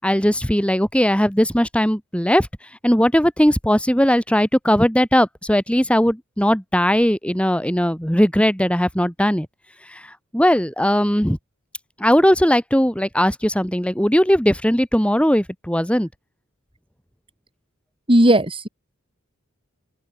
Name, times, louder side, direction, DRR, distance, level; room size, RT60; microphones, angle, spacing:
voice 1, 0.0-2.5 2.8-9.5 9.9-11.4 12.0-16.1, equal, 5° left, 6.2 m, -18 dB
voice 2, 18.1-18.7, right 1 dB, 25° right, 6.0 m, -15 dB
open air
head